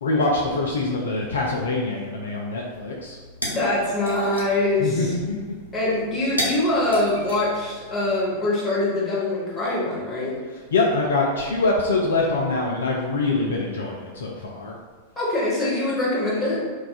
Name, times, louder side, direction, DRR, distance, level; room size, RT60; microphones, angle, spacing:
voice 1, 0.0-3.2 4.8-5.4 10.5-14.7, left 3 dB, 65° left, -1 dB, 0.3 m, -24 dB
sound 1, 2.9-8.3, equal, 85° right, 0.6 m, -33 dB
voice 2, 3.5-5.1 5.7-10.4 15.2-16.6, left 2 dB, 15° left, -8 dB, 1.2 m, -23 dB
2.3 x 2.3 x 4.0 m, 1.5 s
figure-of-eight pair, 90°, 0 cm